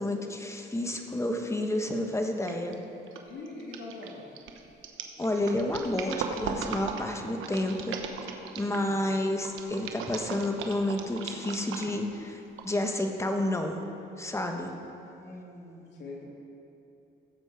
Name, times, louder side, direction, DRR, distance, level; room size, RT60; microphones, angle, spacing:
voice 1, 0.0-2.8 5.2-8.0 8.6-12.4 12.6-13.8 14.2-14.7, left 1 dB, 15° left, 4 dB, 1.3 m, -30 dB
sound 1, 2.5-2.7 3.1-8.9 9.4-12.1 12.6-12.7, right 6 dB, 85° right, 1.0 m, -37 dB
voice 2, 3.2-4.3 8.6-9.0 15.2-16.3, left 2 dB, 65° left, -3 dB, 2.9 m, -43 dB
16.0 x 7.6 x 4.9 m, 2.8 s
cardioid pair, 90°, 20 cm